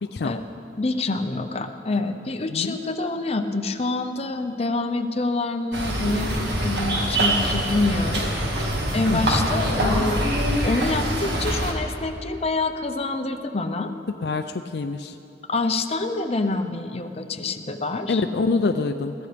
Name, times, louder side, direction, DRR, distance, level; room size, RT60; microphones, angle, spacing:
voice 1, 0.0-0.3 2.5-2.7 9.1-9.5 14.2-15.2 18.1-19.1, left 3 dB, 65° left, 8 dB, 0.4 m, -25 dB
voice 2, 0.8-10.3 10.6-13.9 15.5-18.2, left 3 dB, 35° left, 6 dB, 0.7 m, -26 dB
sound 1, 5.7-11.7, right 1 dB, 70° right, 1.9 m, -24 dB
21.5 x 15.5 x 3.4 m, 2.7 s
head